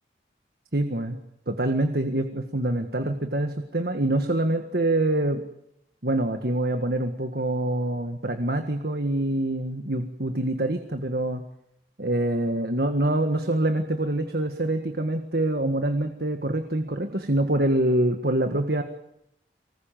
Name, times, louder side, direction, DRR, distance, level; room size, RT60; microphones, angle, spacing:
voice 1, 0.7-1.2 1.5-5.4 6.0-11.4 12.0-18.8, right 1 dB, 60° right, 6 dB, 1.7 m, -25 dB
24.5 x 20.5 x 9.1 m, 0.79 s
head